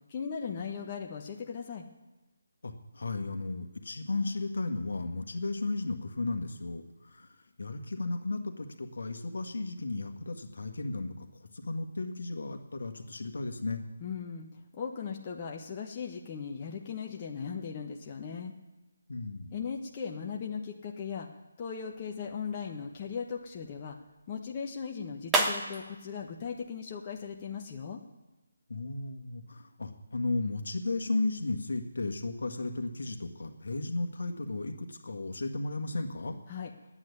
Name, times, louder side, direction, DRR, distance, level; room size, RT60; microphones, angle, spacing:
voice 1, 0.1-1.8 14.0-14.5 14.7-18.5 19.5-21.3 21.6-24.0 24.3-28.0 36.5-36.7, left 6 dB, 30° left, 0 dB, 1.3 m, -38 dB
voice 2, 2.6-7.3 7.6-11.1 11.5-13.8 19.1-19.6 28.7-36.4, left 2 dB, 65° left, 5 dB, 1.7 m, -34 dB
sound 1, 21.7-27.6, right 2 dB, 10° right, 1.2 m, -37 dB
9.7 x 8.7 x 9.8 m, 1.1 s
figure-of-eight pair, 155°, 0 cm